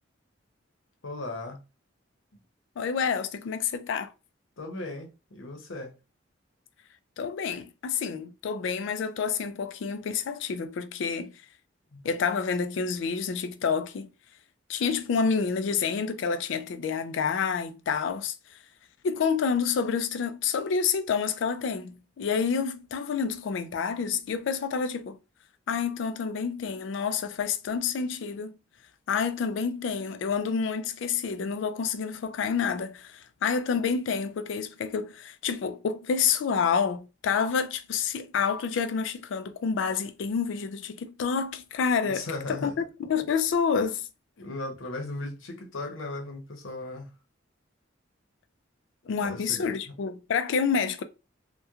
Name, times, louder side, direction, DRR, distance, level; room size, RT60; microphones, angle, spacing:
voice 1, 1.0-1.6 4.6-5.9 11.9-12.0 42.0-42.7 44.4-47.1 49.0-49.7, left 2 dB, 85° left, 0.8 m, -37 dB
voice 2, 2.8-4.1 7.2-11.3 12.0-14.1 14.7-18.3 19.0-25.2 25.7-28.6 29.1-42.7 43.0-44.1 49.1-51.0, left 6 dB, 65° left, 0.3 m, -28 dB
2.9 x 2.1 x 2.3 m
head